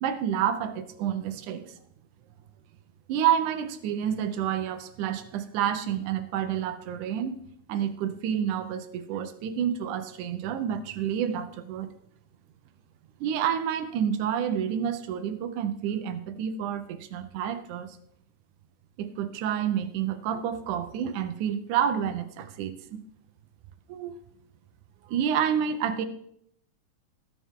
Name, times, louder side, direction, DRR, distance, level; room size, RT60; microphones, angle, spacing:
voice 1, 0.0-1.7 3.1-7.3 7.7-11.9 13.2-18.0 19.0-23.0 23.9-24.2 25.0-26.1, right 9 dB, 85° right, 9 dB, 2.3 m, -29 dB
20.0 x 6.8 x 3.7 m, 0.70 s
omnidirectional pair, 3.4 m